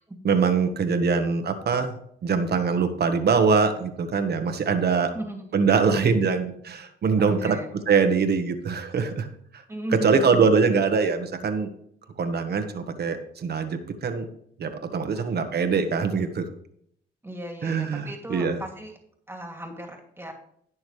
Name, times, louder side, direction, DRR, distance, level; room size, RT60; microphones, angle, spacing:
voice 1, 0.2-1.9 2.2-5.1 5.5-7.6 7.9-9.6 9.9-11.7 12.2-14.3 14.6-16.4 17.6-18.6, right 5 dB, 55° right, 7 dB, 1.4 m, -23 dB
voice 2, 7.2-7.7 9.7-10.5 15.2-15.5 17.2-18.9 19.3-20.3, right 1 dB, 10° right, 2 dB, 2.6 m, -36 dB
17.0 x 6.3 x 3.3 m, 0.67 s
cardioid pair, 90°, 20 cm